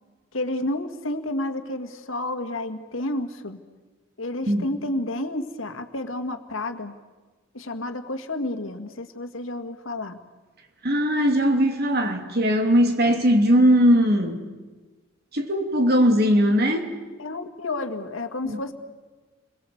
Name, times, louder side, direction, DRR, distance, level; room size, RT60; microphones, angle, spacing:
voice 1, 0.3-3.6 4.2-7.0 7.5-10.2 17.2-18.7, left 1 dB, 75° left, 1.9 m, -30 dB
voice 2, 10.8-14.4 15.3-16.9 18.4-18.6, equal, 50° right, 3.0 m, -19 dB
30.0 x 22.5 x 7.9 m
head